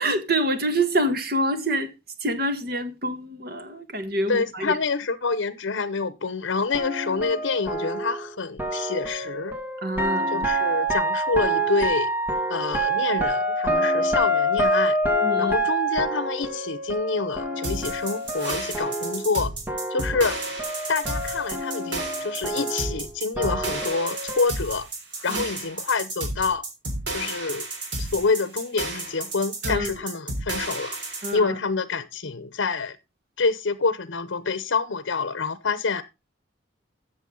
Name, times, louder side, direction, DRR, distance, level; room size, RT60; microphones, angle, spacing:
voice 1, 0.0-1.9 2.2-4.8 9.8-10.3 15.2-15.5 25.3-25.4 29.6-29.9 31.2-31.6, right 1 dB, 50° right, 1.6 m, -26 dB
voice 2, 4.3-9.5 10.3-12.1 12.5-15.0 15.4-19.5 19.9-20.4 20.9-24.9 25.2-26.6 27.1-27.7 28.0-31.0 31.3-33.0 33.4-36.0, left 4 dB, 75° left, 0.8 m, -27 dB
sound 1, 6.7-19.4 19.7-24.5, right 1 dB, 10° right, 1.7 m, -27 dB
sound 2, 17.6-31.3, right 2 dB, 65° right, 3.7 m, -32 dB
14.0 x 6.8 x 3.8 m
head